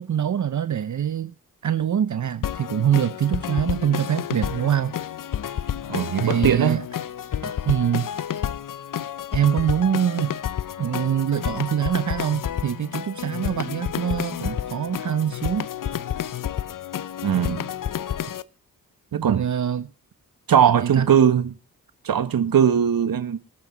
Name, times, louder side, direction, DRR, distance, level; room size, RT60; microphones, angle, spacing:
voice 1, 0.0-1.3 1.6-5.0 6.2-6.8 7.4-8.1 9.3-10.3 10.8-15.7 19.2-19.9 20.6-21.1, right 9 dB, 55° right, 0.7 m, -24 dB
sound 1, 2.4-18.4, left 10 dB, 60° left, 0.7 m, -30 dB
voice 2, 5.9-6.8 17.2-17.7 19.1-19.5 20.5-21.5 22.0-23.4, right 8 dB, 70° right, 1.3 m, -20 dB
24.0 x 8.0 x 4.0 m
cardioid pair, 60°, 36 cm